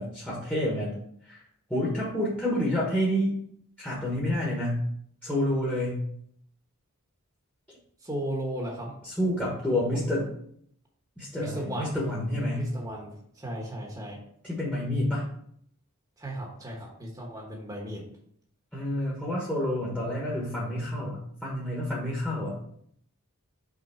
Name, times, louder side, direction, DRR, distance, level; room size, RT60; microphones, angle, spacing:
voice 1, 0.0-1.4 1.7-3.3 3.8-4.8 5.2-6.0 9.0-10.3 11.2-12.7 14.4-15.2 18.7-22.6, left 1 dB, 5° left, -6 dB, 1.2 m, -29 dB
voice 2, 8.0-8.9 9.9-10.1 11.4-12.0 12.6-14.2 16.2-18.1, right 1 dB, 15° right, -1 dB, 1.1 m, -35 dB
5.7 x 3.7 x 5.6 m, 0.67 s
head